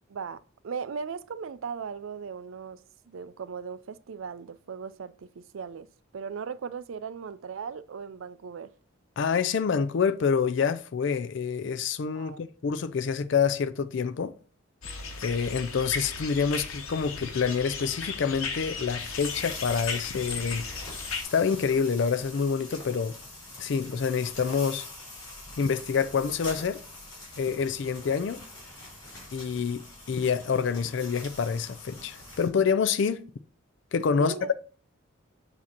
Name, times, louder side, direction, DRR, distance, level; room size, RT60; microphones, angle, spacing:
voice 1, 0.1-5.9 6.1-8.7 12.1-12.4 34.2-34.5, right 6 dB, 70° right, 0.4 m, -38 dB
voice 2, 9.2-14.3 15.2-20.6 21.3-23.1 23.6-24.9 25.6-26.8 27.4-28.4 29.3-33.2 33.9-34.5, left 6 dB, 55° left, 0.4 m, -27 dB
sound 1, 14.8-21.2, left 5 dB, 85° left, 1.2 m, -36 dB
sound 2, 19.0-32.5, left 2 dB, 20° left, 3.7 m, -44 dB
7.3 x 2.8 x 5.9 m
head